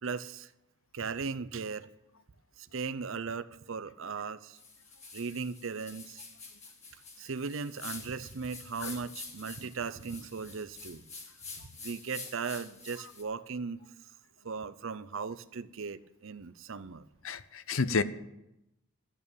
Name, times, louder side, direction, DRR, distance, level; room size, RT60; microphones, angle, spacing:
voice 1, 0.0-0.5 0.9-1.9 2.6-4.6 5.1-6.2 7.2-11.0 11.8-13.8 14.4-17.0, right 5 dB, 65° right, 15 dB, 0.6 m, -37 dB
sound 1, 4.6-13.2, left 4 dB, 30° left, 2.3 m, -47 dB
voice 2, 17.2-18.0, left 4 dB, 65° left, 14 dB, 0.7 m, -30 dB
12.5 x 8.8 x 7.1 m, 0.87 s
head